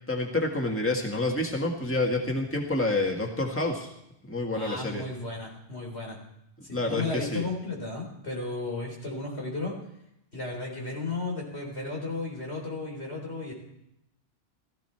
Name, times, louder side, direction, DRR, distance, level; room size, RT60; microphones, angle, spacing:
voice 1, 0.1-3.9 4.2-5.1 6.7-7.4, left 2 dB, 10° left, 1 dB, 1.8 m, -28 dB
voice 2, 4.5-6.2 6.6-9.8 10.3-13.5, left 3 dB, 90° left, 0 dB, 4.4 m, -34 dB
15.5 x 14.5 x 4.5 m, 0.81 s
omnidirectional pair, 1.1 m